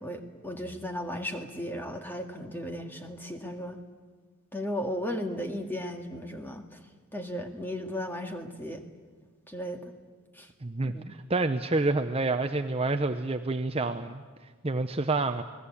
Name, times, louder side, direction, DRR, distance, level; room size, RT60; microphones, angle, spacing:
voice 1, 0.0-3.8 4.5-6.6 7.1-8.8 9.5-9.8 10.4-10.5 10.9-11.0, equal, 10° left, 4 dB, 1.9 m, -35 dB
voice 2, 10.6-14.2 14.6-15.4, right 3 dB, 25° right, 8 dB, 0.7 m, -28 dB
28.5 x 20.0 x 8.5 m, 1.5 s
head